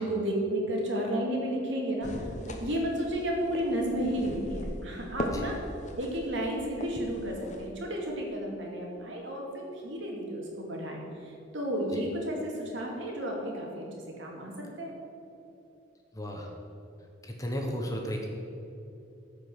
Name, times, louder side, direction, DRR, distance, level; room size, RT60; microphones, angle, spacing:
voice 1, 0.0-5.6 6.0-13.9 14.2-14.5 14.8-14.9, right 1 dB, 70° right, -1 dB, 2.3 m, -32 dB
sound 1, 2.0-7.7, left 1 dB, 40° left, 1.0 m, -39 dB
voice 2, 16.1-16.5 17.2-18.3, equal, 15° left, 1 dB, 1.1 m, -34 dB
14.0 x 5.4 x 6.3 m, 2.8 s
head